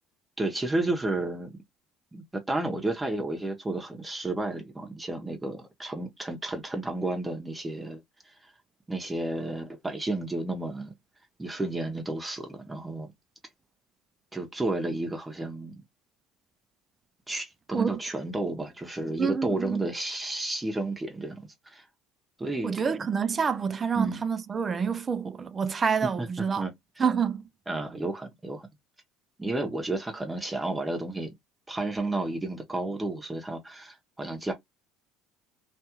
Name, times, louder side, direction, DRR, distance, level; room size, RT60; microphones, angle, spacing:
voice 1, 0.4-1.6 2.1-8.5 8.9-10.9 11.4-13.1 14.3-15.8 17.3-21.8 22.4-23.1 24.0-24.2 26.0-27.0 27.7-28.7 29.4-31.3 31.7-34.5, right 2 dB, 15° right, 0.8 m, -32 dB
voice 2, 19.2-19.8 22.6-26.6 27.0-27.4, right 6 dB, 30° right, 0.4 m, -27 dB
2.5 x 2.4 x 2.9 m
hypercardioid pair, 70°, 0 cm